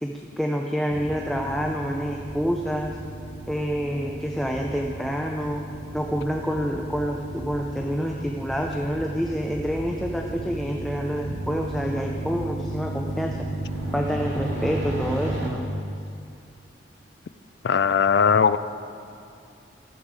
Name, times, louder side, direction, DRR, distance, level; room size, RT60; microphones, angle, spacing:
voice 1, 0.0-2.9 3.5-5.6 5.9-13.5 13.9-15.7, equal, ahead, 0 dB, 0.5 m, -27 dB
sound 1, 0.9-15.5, right 1 dB, 90° right, 2.2 m, -34 dB
voice 2, 17.6-18.6, left 6 dB, 70° left, 13 dB, 0.4 m, -19 dB
15.0 x 7.2 x 4.8 m, 2.5 s
head